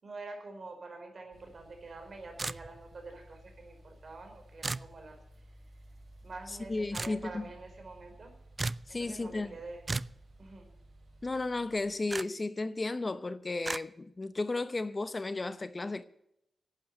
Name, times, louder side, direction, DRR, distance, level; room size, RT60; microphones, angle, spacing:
voice 1, 0.0-5.2 6.2-8.3 9.0-9.8 10.4-10.7, right 3 dB, 55° right, 4.7 m, -46 dB
sound 1, 1.3-11.8, right 1 dB, 70° right, 6.6 m, -56 dB
sound 2, 2.4-2.9 4.6-4.9 6.9-7.2 8.6-8.9 9.9-10.2 12.1-12.3 13.6-13.8, right 3 dB, 35° right, 0.4 m, -34 dB
voice 2, 6.7-7.4 8.9-9.5 11.2-16.0, left 2 dB, 30° left, 0.7 m, -34 dB
12.0 x 9.0 x 9.0 m
cardioid pair, 85°, 0 cm